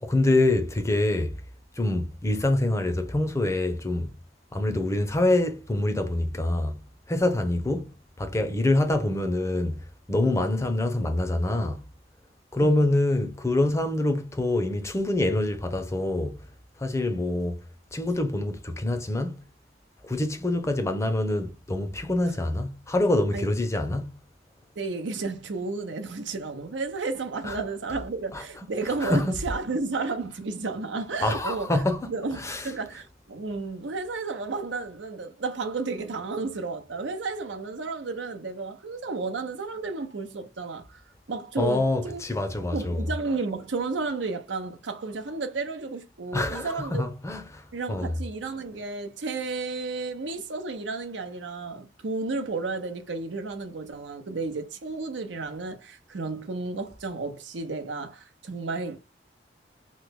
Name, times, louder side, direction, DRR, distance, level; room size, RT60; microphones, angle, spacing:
voice 1, 0.0-1.3 1.8-4.1 4.5-6.8 7.1-7.9 8.2-9.8 10.1-11.8 12.5-16.4 16.8-17.6 17.9-19.4 20.0-24.2 27.4-27.6 28.3-28.4 29.0-29.4 31.2-32.1 32.3-32.7 41.6-43.0 46.3-47.6 47.9-48.1, left 2 dB, 15° left, 0.5 m, -25 dB
voice 2, 24.8-41.0 41.3-42.2 42.7-47.1 47.7-59.0, right 3 dB, 85° right, 0.7 m, -32 dB
3.1 x 2.1 x 3.6 m
head